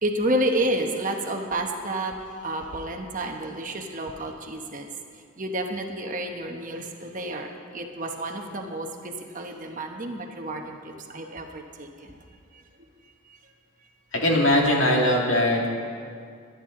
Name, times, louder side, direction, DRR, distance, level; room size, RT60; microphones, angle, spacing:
voice 1, 0.0-2.1 2.4-4.9 5.4-12.1, right 1 dB, 35° right, 3 dB, 1.1 m, -30 dB
voice 2, 14.1-15.7, left 1 dB, 60° left, -1 dB, 2.2 m, -20 dB
22.5 x 10.5 x 3.8 m, 2.2 s
head